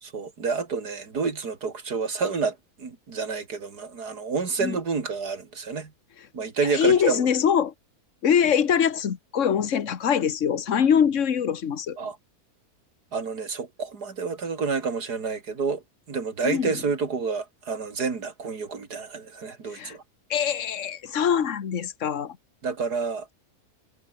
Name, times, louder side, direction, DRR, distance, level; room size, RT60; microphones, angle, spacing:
voice 1, 0.0-5.9 6.3-7.3 12.0-12.2 13.1-20.0 22.6-23.3, right 5 dB, 85° right, 3.2 m, -29 dB
voice 2, 6.7-7.7 8.2-12.0 16.4-16.8 19.7-20.0 20.3-22.4, left 8 dB, 50° left, 1.6 m, -23 dB
omnidirectional pair, 1.7 m